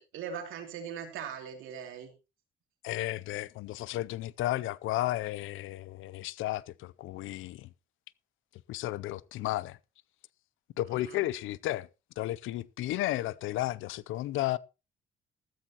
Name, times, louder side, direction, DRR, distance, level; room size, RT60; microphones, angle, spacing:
voice 1, 0.0-2.1 10.9-11.2, right 7 dB, 90° right, 2.8 m, -40 dB
voice 2, 2.8-7.7 8.7-9.8 10.8-11.9 12.2-14.6, left 15 dB, 85° left, 0.5 m, -33 dB
14.0 x 13.5 x 2.9 m
cardioid pair, 90°, 20 cm